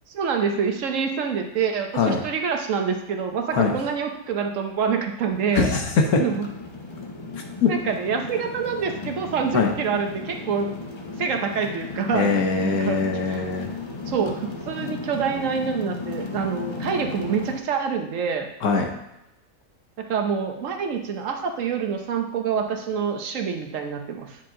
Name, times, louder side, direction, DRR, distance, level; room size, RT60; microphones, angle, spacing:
voice 1, 0.1-5.7 6.2-6.5 7.7-10.7 11.2-12.3 12.6-13.5 14.1-18.5 20.0-24.4, right 6 dB, 60° right, 4 dB, 1.0 m, -26 dB
sound 1, 5.3-17.6, left 3 dB, 45° left, 0.3 m, -35 dB
voice 2, 5.5-6.2 7.6-7.7 9.5-9.7 12.1-13.7 18.6-18.9, left 4 dB, 70° left, 2 dB, 1.3 m, -21 dB
9.3 x 4.3 x 3.7 m, 0.87 s
omnidirectional pair, 1.7 m